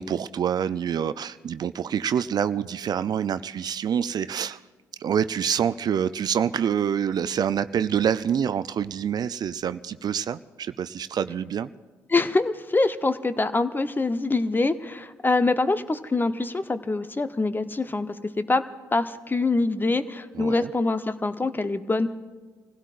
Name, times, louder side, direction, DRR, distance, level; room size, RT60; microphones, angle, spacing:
voice 1, 0.0-4.6 5.0-11.7 20.3-20.7, right 8 dB, 50° right, 14 dB, 0.4 m, -26 dB
voice 2, 12.1-18.6 18.9-22.1, left 3 dB, 20° left, 11 dB, 0.8 m, -24 dB
26.5 x 16.0 x 2.5 m, 1.4 s
hypercardioid pair, 50°, 9 cm